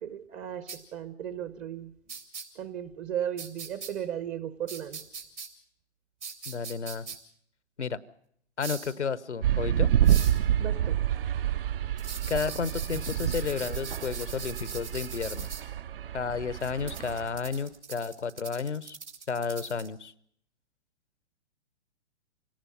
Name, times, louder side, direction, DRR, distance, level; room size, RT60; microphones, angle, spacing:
voice 1, 0.0-0.6 0.9-1.9 2.6-5.0 10.6-11.0, right 10 dB, 20° right, 14 dB, 0.7 m, -35 dB
sound 1, 0.7-0.8 2.1-2.4 3.4-3.9 4.7-5.5 6.2-7.2 8.6-8.9 10.0-10.4 12.0-15.6 16.6-19.9, right 6 dB, 80° right, 4.3 m, -41 dB
voice 2, 6.5-7.1 7.8-8.0 8.6-9.9 12.3-15.5 16.1-19.0 19.3-20.1, left 5 dB, 80° left, 18 dB, 1.0 m, -32 dB
sound 2, 9.4-17.5, right 11 dB, 55° right, 0.7 m, -28 dB
27.0 x 18.0 x 5.4 m, 0.66 s
figure-of-eight pair, 120°, 34 cm